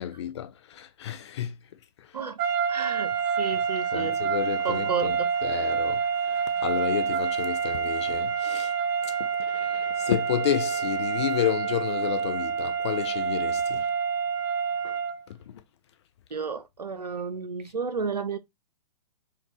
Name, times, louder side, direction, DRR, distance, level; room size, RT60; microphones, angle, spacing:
voice 1, 0.0-1.6 3.9-5.2 5.4-8.7 9.4-13.9 14.8-15.0, left 11 dB, 45° left, 0.5 m, -31 dB
sound 1, 2.4-15.2, right 6 dB, 35° right, 0.7 m, -27 dB
voice 2, 2.7-4.2 4.6-5.3 16.3-18.4, right 5 dB, 75° right, 0.7 m, -32 dB
4.5 x 2.4 x 3.0 m
figure-of-eight pair, 120°, 21 cm